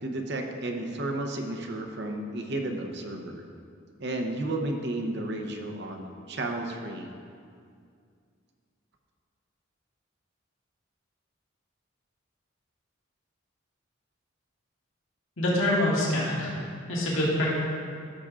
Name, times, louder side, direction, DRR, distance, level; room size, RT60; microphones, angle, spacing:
voice 1, 0.0-3.4 4.0-7.1, right 2 dB, 55° right, 3 dB, 0.8 m, -32 dB
voice 2, 15.4-16.5 16.9-17.5, left 1 dB, 80° left, -6 dB, 1.8 m, -25 dB
13.5 x 6.8 x 2.5 m, 2.3 s
head